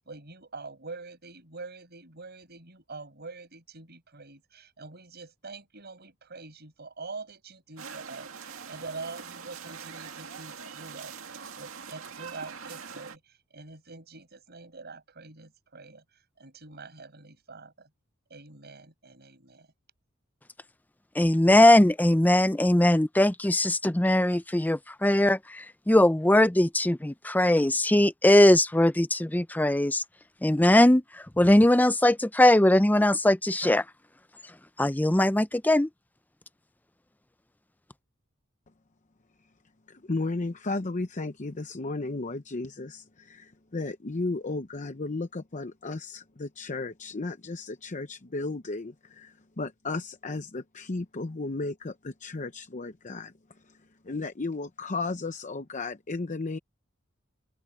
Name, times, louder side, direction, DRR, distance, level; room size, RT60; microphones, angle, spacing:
voice 1, 0.0-17.9 18.3-19.7, right 3 dB, 55° right, 6.2 m, -45 dB
sound 1, 7.8-13.2, right 6 dB, 90° right, 2.1 m, -43 dB
voice 2, 21.2-30.0 30.4-33.8 34.8-35.9, left 1 dB, 10° left, 0.6 m, -21 dB
voice 3, 40.1-53.3 54.0-56.6, left 3 dB, 35° left, 0.8 m, -34 dB
open air
head